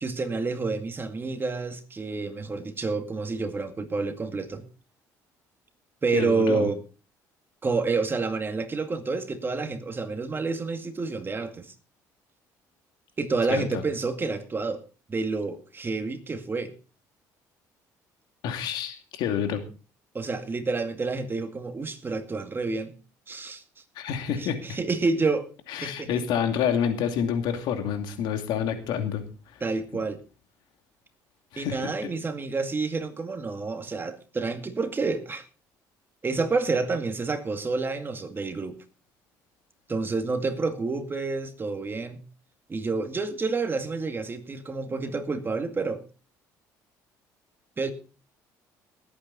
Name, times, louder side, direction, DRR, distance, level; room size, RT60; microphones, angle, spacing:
voice 1, 0.0-4.6 6.0-6.8 7.6-11.7 13.2-14.8 15.1-16.7 20.1-22.9 23.3-23.6 24.4-25.5 25.8-26.2 29.6-30.2 31.6-35.4 36.2-38.7 39.9-42.2 42.7-46.0 47.8-47.9, right 4 dB, 30° right, 7 dB, 2.1 m, -29 dB
voice 2, 6.1-6.7 13.5-13.8 18.4-19.6 24.0-24.8 25.7-29.2 29.5-29.6 29.9-30.0 31.5-32.1, left 8 dB, 75° left, 6 dB, 2.6 m, -28 dB
19.5 x 8.8 x 4.1 m, 0.36 s
supercardioid pair, 85°, 8 cm